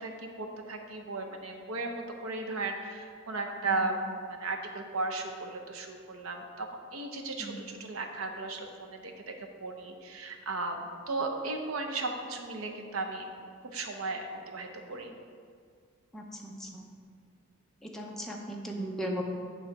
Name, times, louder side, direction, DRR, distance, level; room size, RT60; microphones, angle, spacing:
voice 1, 0.0-6.7 6.9-9.3 9.6-13.3 13.7-15.1, right 3 dB, 80° right, 3 dB, 0.8 m, -35 dB
voice 2, 16.1-16.9 17.8-19.2, equal, ahead, -1 dB, 0.7 m, -37 dB
9.1 x 3.2 x 5.9 m, 2.1 s
head